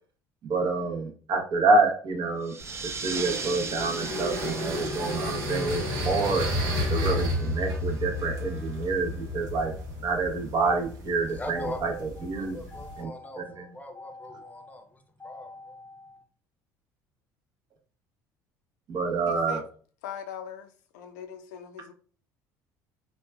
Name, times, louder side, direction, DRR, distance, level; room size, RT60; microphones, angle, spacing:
voice 1, 0.4-2.6 2.8-6.4 6.9-9.8 10.0-12.6 13.0-13.1 13.4-13.7 18.9-19.6, right 3 dB, 50° right, 0.8 m, -27 dB
sound 1, 2.4-7.6, right 4 dB, 30° right, 0.4 m, -38 dB
sound 2, 2.6-13.0, left 1 dB, 80° right, 0.9 m, -32 dB
voice 2, 11.3-16.3, left 1 dB, 15° left, 0.6 m, -41 dB
voice 3, 19.3-19.6 20.0-21.9, left 8 dB, 85° left, 0.4 m, -41 dB
3.0 x 2.2 x 2.2 m
hypercardioid pair, 75°, 9 cm